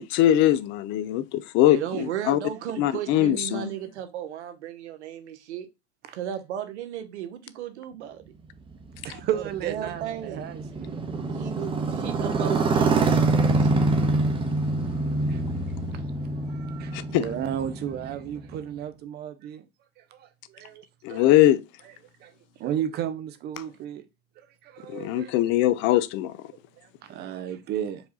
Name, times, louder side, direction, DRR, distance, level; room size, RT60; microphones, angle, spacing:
voice 1, 0.0-2.4 2.8-3.7 16.9-17.3 21.0-21.6 24.9-26.4, left 13 dB, 35° left, 0.4 m, -22 dB
voice 2, 1.7-5.7 6.1-8.3 9.3-10.5 11.3-12.9 13.6-13.7, right 10 dB, 80° right, 1.0 m, -35 dB
Motorcycle, 8.7-18.6, right 3 dB, 15° right, 0.8 m, -25 dB
voice 3, 9.0-10.9 15.3-15.4 16.5-19.6 20.1-20.8 21.1-21.2 22.2-22.3 22.6-24.0 24.6-25.3 26.8-28.0, right 10 dB, 30° right, 0.5 m, -33 dB
4.8 x 2.4 x 3.9 m
hypercardioid pair, 115°, 34 cm